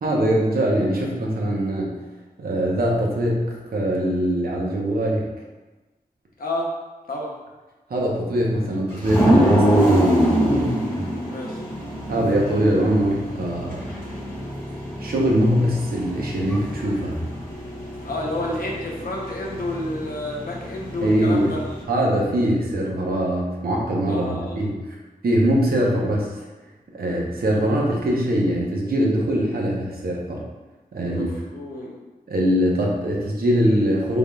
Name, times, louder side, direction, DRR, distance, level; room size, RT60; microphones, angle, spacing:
voice 1, 0.0-1.9 2.4-5.3 7.9-10.6 12.1-13.8 15.0-17.2 21.0-21.5 21.9-24.9 25.2-26.3 26.9-30.4 30.9-31.3 32.3-34.2, equal, 80° right, -2 dB, 0.8 m, -22 dB
voice 2, 6.4-6.7 7.1-7.3 11.3-11.6 18.0-21.6 24.0-24.6 31.0-32.0, left 1 dB, 70° left, -2 dB, 0.7 m, -30 dB
sound 1, 9.0-21.8, right 1 dB, 15° left, 1.2 m, -25 dB
3.7 x 3.4 x 2.3 m, 1.2 s
wide cardioid pair, 80°, 15 cm